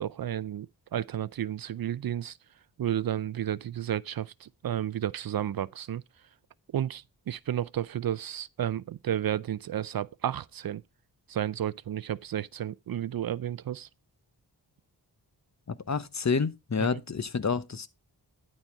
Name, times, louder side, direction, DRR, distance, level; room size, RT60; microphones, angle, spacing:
voice 1, 0.0-2.4 2.8-6.0 6.7-10.8 11.3-13.9 16.9-17.0, right 10 dB, 55° right, 0.5 m, -32 dB
voice 2, 15.7-17.9, left 5 dB, 40° left, 0.9 m, -29 dB
12.0 x 4.3 x 4.6 m
cardioid pair, 55°, 42 cm